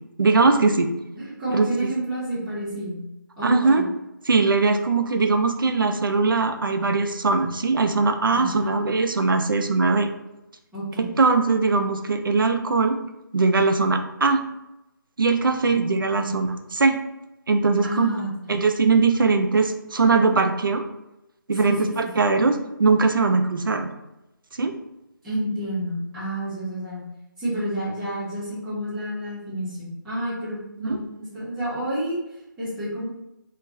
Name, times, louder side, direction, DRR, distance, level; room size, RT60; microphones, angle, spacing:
voice 1, 0.2-0.9 1.5-1.9 3.4-3.8 4.3-10.1 11.0-13.0 13.3-14.4 15.2-17.0 17.5-18.1 18.5-20.8 21.5-23.9 24.6-24.7 30.9-31.0, right 4 dB, 75° right, 6 dB, 0.4 m, -21 dB
voice 2, 1.2-3.0 3.4-3.8 8.3-8.8 10.7-11.1 16.1-16.4 17.8-18.5 21.6-22.1 25.2-27.0 27.4-32.2 32.6-33.1, right 1 dB, 5° right, -12 dB, 0.7 m, -29 dB
2.3 x 2.1 x 3.8 m, 0.92 s
figure-of-eight pair, 165°, 11 cm